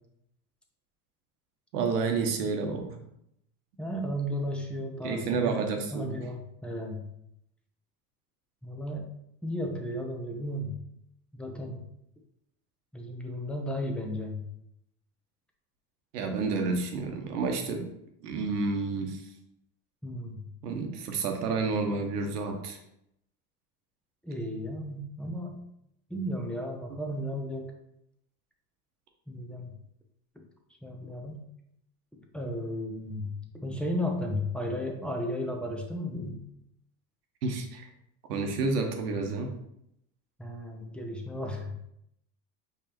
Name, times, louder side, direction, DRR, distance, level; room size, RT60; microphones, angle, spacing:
voice 1, 1.7-3.0 5.0-6.1 16.1-17.8 18.2-19.2 20.6-22.8 37.4-37.9 38.3-39.5, right 4 dB, 85° right, 3 dB, 1.0 m, -30 dB
voice 2, 3.8-5.6 5.9-7.1 8.6-9.0 9.4-10.7 11.3-11.8 12.9-14.5 20.0-20.4 24.2-25.6 26.1-27.7 29.3-29.7 30.8-31.4 32.3-36.4 40.4-41.7, equal, ahead, 1 dB, 0.7 m, -34 dB
4.9 x 3.5 x 2.9 m, 0.78 s
hypercardioid pair, 100°, 46 cm